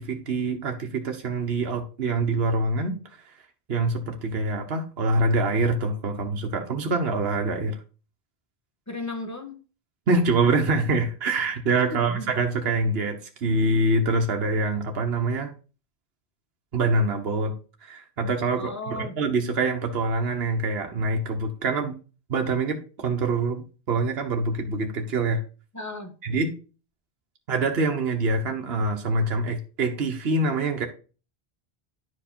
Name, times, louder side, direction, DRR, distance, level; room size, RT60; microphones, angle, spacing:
voice 1, 0.0-3.0 3.7-7.8 10.1-15.5 16.7-17.5 17.8-22.0 22.3-25.4 26.2-26.6 27.5-30.9, right 2 dB, 70° right, 3 dB, 1.3 m, -25 dB
voice 2, 8.9-9.6 11.9-12.3 18.6-19.2 25.7-26.1, left 2 dB, 15° left, 3 dB, 1.5 m, -35 dB
10.5 x 4.8 x 4.4 m, 0.35 s
omnidirectional pair, 1.1 m